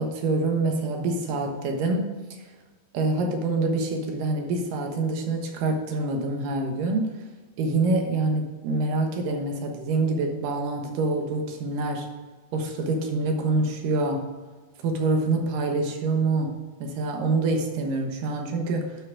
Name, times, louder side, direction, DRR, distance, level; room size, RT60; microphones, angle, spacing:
voice 1, 0.0-2.1 2.9-7.1 7.6-12.1 12.5-14.2 14.8-19.0, right 3 dB, 80° right, 3 dB, 2.9 m, -26 dB
10.5 x 6.1 x 4.9 m, 1.3 s
omnidirectional pair, 3.8 m